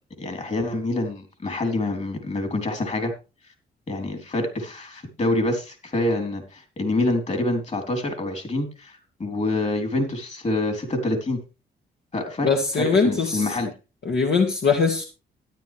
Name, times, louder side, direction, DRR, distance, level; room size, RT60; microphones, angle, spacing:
voice 1, 0.2-3.1 3.9-11.4 12.1-12.5 12.8-13.7, left 2 dB, 40° left, 5 dB, 3.9 m, -26 dB
voice 2, 12.4-13.5 14.1-15.0, left 4 dB, 65° left, 0 dB, 2.2 m, -21 dB
13.0 x 10.5 x 3.5 m, 0.31 s
cardioid pair, 85°, 19 cm